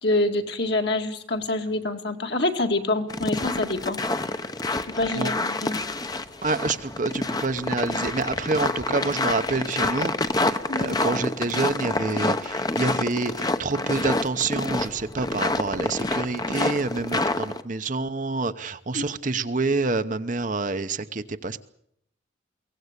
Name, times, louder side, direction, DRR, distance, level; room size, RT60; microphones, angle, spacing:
voice 1, 0.0-4.0 5.0-5.7 10.7-11.0 18.9-19.0, left 2 dB, 55° left, 4 dB, 2.1 m, -26 dB
sound 1, 3.1-17.6, left 2 dB, 20° left, 0.9 m, -27 dB
voice 2, 6.4-21.7, right 3 dB, 40° right, 10 dB, 0.8 m, -27 dB
23.0 x 17.5 x 8.2 m, 0.73 s
head